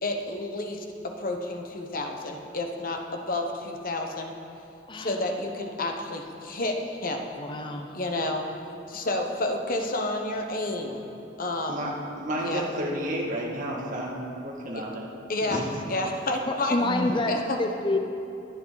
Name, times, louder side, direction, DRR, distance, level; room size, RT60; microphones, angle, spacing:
voice 1, 0.0-4.3 4.9-7.3 7.9-8.4 8.9-11.0 11.4-11.8 12.4-12.6 14.7-14.8 15.3-15.6 15.9-16.8 17.1-17.6, left 2 dB, 45° left, 3 dB, 1.2 m, -30 dB
voice 2, 4.9-5.2 7.4-7.9 16.5-18.0, left 2 dB, 25° left, 5 dB, 0.6 m, -27 dB
voice 3, 12.2-15.1 15.5-15.6, right 1 dB, 40° right, -3 dB, 2.0 m, -31 dB
22.0 x 7.8 x 4.1 m, 2.8 s
head